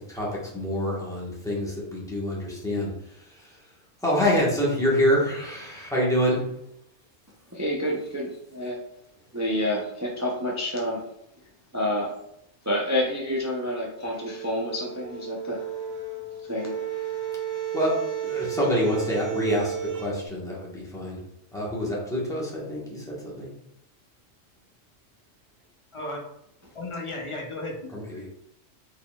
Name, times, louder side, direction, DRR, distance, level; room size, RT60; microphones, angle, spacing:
voice 1, 0.5-2.9 4.0-6.4 17.7-17.9 18.2-21.2 21.5-23.5 27.9-28.3, equal, 5° left, -6 dB, 1.2 m, -26 dB
voice 2, 7.5-8.8 9.3-11.0 11.7-12.1 12.7-15.6 16.5-17.0, left 1 dB, 25° right, -2 dB, 0.3 m, -28 dB
sound 1, 14.0-20.1, right 9 dB, 70° right, 1.4 m, -33 dB
voice 3, 25.9-26.2 26.7-27.9, left 2 dB, 35° left, 0 dB, 0.5 m, -34 dB
4.5 x 3.8 x 2.3 m, 0.76 s
omnidirectional pair, 1.4 m